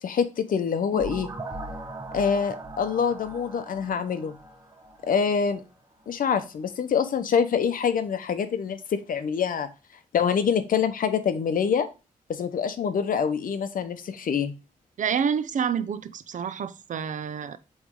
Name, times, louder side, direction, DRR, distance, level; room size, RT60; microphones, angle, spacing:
voice 1, 0.0-1.3 2.1-4.4 5.0-5.6 6.1-9.7 10.1-11.9 12.3-14.5, left 6 dB, 70° left, 0.8 m, -25 dB
sound 1, 0.9-5.6, right 2 dB, 25° right, 0.9 m, -39 dB
voice 2, 15.0-17.6, right 7 dB, 60° right, 0.5 m, -28 dB
7.8 x 3.2 x 3.7 m
wide cardioid pair, 120°, 15 cm